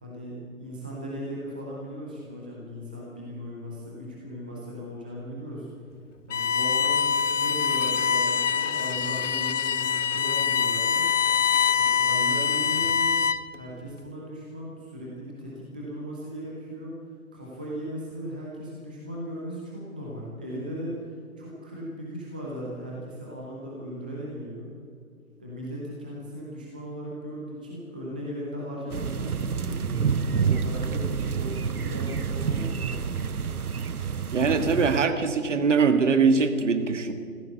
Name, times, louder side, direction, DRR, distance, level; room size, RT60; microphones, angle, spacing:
voice 1, 0.0-5.7 6.3-11.1 11.7-13.2 13.5-17.0 17.3-24.7 25.4-30.0 30.3-33.2, equal, 5° right, -4 dB, 0.5 m, -37 dB
Bowed string instrument, 6.3-13.6, left 7 dB, 55° left, 0.6 m, -24 dB
Thunder silent rain and blackbird, 28.9-35.1, right 6 dB, 80° right, 0.9 m, -28 dB
voice 2, 34.3-37.1, right 5 dB, 55° right, 8 dB, 1.7 m, -22 dB
15.0 x 13.5 x 6.9 m, 2.2 s
figure-of-eight pair, 135°, 44 cm